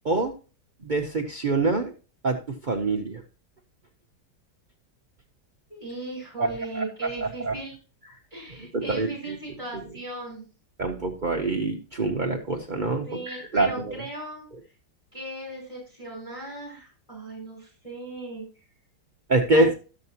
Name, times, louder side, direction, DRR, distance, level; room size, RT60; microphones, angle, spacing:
voice 1, 0.8-1.9 2.2-2.4 2.6-3.2 6.4-6.8 7.2-7.5 8.7-9.4 10.8-14.0 19.3-19.7, right 2 dB, 60° right, 1 dB, 0.5 m, -25 dB
voice 2, 5.7-7.7 8.3-10.5 13.1-14.4 15.1-18.4 19.5-19.8, right 1 dB, 15° left, -4 dB, 5.3 m, -37 dB
12.0 x 7.4 x 2.8 m, 0.34 s
omnidirectional pair, 1.9 m